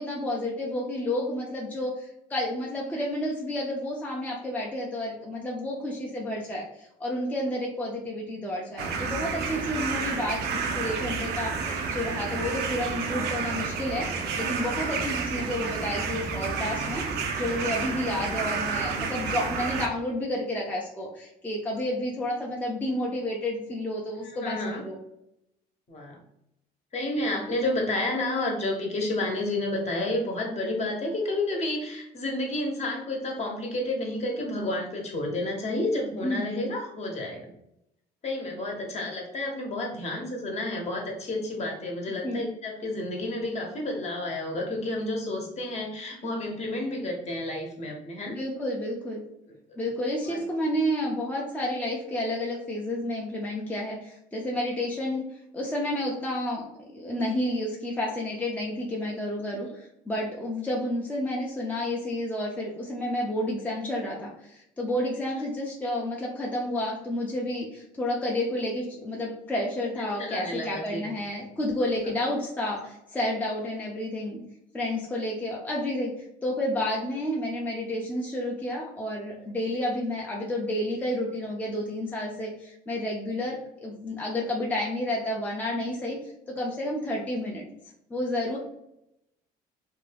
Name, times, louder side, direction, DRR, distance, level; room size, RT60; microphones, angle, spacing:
voice 1, 0.0-17.0 17.4-25.0 36.2-36.7 42.2-42.5 48.3-49.2 49.8-55.3 55.5-74.4 74.7-86.2 86.5-87.6 88.1-88.6, left 1 dB, 10° left, -3 dB, 0.5 m, -30 dB
sound 1, 8.8-19.9, right 5 dB, 75° right, 0.5 m, -30 dB
voice 2, 24.2-24.8 25.9-26.2 26.9-37.5 38.2-48.3 50.3-50.4 70.0-71.1, left 1 dB, 40° left, 0 dB, 0.8 m, -30 dB
2.6 x 2.2 x 3.3 m, 0.81 s
cardioid pair, 110°, 17 cm